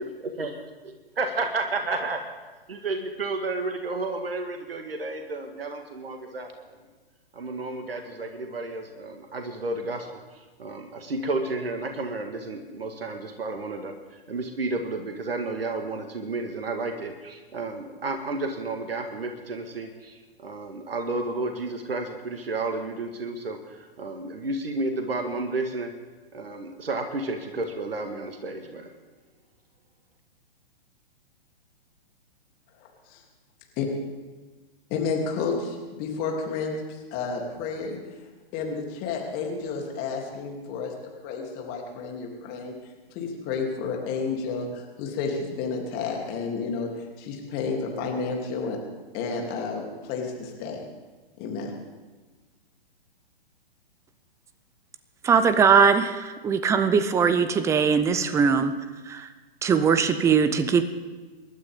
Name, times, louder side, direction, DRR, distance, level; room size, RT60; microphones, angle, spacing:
voice 1, 0.0-2.3 2.7-6.8 7.3-25.9 26.3-28.9, right 3 dB, 70° right, 5 dB, 1.9 m, -32 dB
voice 2, 34.9-38.0 38.5-40.9 41.2-42.7 43.1-46.9 47.2-48.8 49.1-50.8 51.4-51.7, left 5 dB, 30° left, 0 dB, 3.1 m, -31 dB
voice 3, 55.2-58.7 59.1-59.3 59.6-60.8, right 6 dB, 10° right, 12 dB, 0.6 m, -21 dB
27.0 x 12.0 x 3.7 m, 1.3 s
figure-of-eight pair, 115°, 30 cm